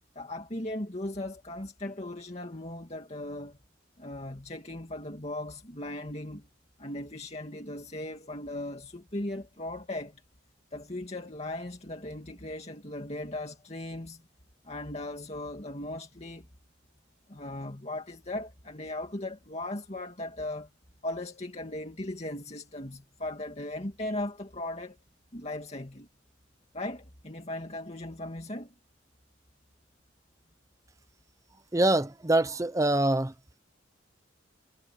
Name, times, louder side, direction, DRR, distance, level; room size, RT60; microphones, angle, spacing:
voice 1, 0.2-3.6 4.0-6.5 6.8-10.2 10.7-14.2 14.6-16.5 17.3-20.7 21.0-25.0 25.3-26.1 26.7-28.7, left 1 dB, 35° left, 2.4 m, -38 dB
voice 2, 31.7-33.3, right 2 dB, 15° right, 0.7 m, -24 dB
head